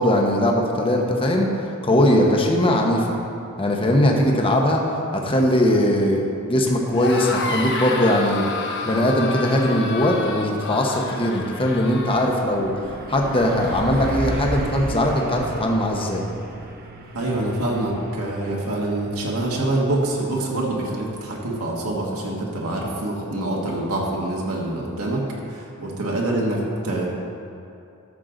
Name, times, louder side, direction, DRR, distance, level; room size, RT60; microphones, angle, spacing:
voice 1, 0.0-1.5 1.8-3.0 3.6-4.8 5.2-8.5 8.9-12.7 13.1-16.3, left 1 dB, 25° left, 1 dB, 0.9 m, -20 dB
sound 1, 6.9-12.3, left 3 dB, 55° left, 0.9 m, -30 dB
Truck, 11.2-23.3, right 1 dB, 45° right, 0.8 m, -35 dB
voice 2, 17.1-27.1, right 1 dB, 80° right, -3 dB, 1.5 m, -25 dB
13.0 x 6.6 x 3.9 m, 2.6 s
head